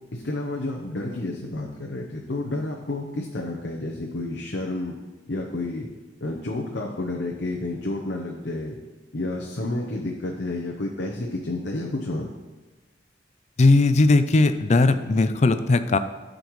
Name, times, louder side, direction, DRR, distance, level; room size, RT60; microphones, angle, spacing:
voice 1, 0.1-5.0 5.3-5.9 6.2-8.8 9.1-12.3, left 2 dB, 65° left, -1 dB, 0.8 m, -30 dB
voice 2, 13.6-16.0, left 3 dB, 40° left, 10 dB, 0.4 m, -18 dB
13.0 x 5.2 x 3.2 m, 1.2 s
head